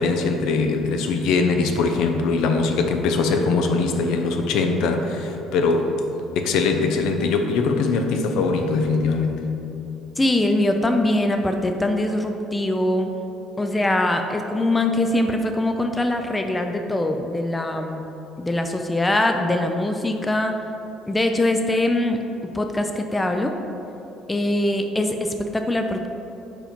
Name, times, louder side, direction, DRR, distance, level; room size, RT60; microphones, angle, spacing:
voice 1, 0.0-5.9 6.4-9.4, left 4 dB, 70° left, 5 dB, 0.6 m, -21 dB
voice 2, 10.2-13.1 13.6-18.0 18.4-20.6 21.1-22.2 22.5-23.5 24.3-26.1, left 1 dB, 10° left, 5 dB, 0.3 m, -22 dB
5.0 x 4.4 x 5.1 m, 3.0 s
cardioid pair, 140°, 0 cm